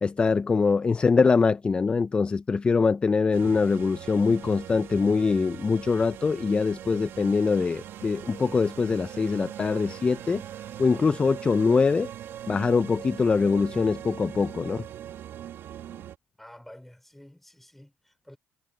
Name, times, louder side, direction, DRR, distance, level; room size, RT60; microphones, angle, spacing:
voice 1, 0.0-10.4 10.8-12.1 12.5-14.8, left 4 dB, 25° left, 0.5 m, -23 dB
sound 1, 3.3-16.2, right 11 dB, 65° right, 1.4 m, -41 dB
voice 2, 16.4-18.4, left 1 dB, 5° left, 5.1 m, -50 dB
cardioid pair, 105°, 4 cm